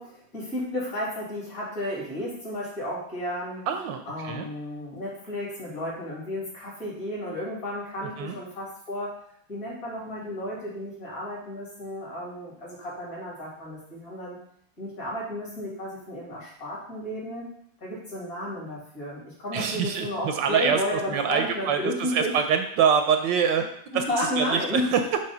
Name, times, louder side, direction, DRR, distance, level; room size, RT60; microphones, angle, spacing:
voice 1, 0.0-3.6 4.1-9.1 9.5-14.4 14.8-17.5 17.8-22.3 23.9-24.9, left 1 dB, 45° left, -5 dB, 3.0 m, -33 dB
voice 2, 3.7-4.5 8.2-8.4 19.5-23.6 23.9-25.0, right 7 dB, 75° right, 6 dB, 1.2 m, -25 dB
6.8 x 3.3 x 5.5 m, 0.68 s
omnidirectional pair, 2.1 m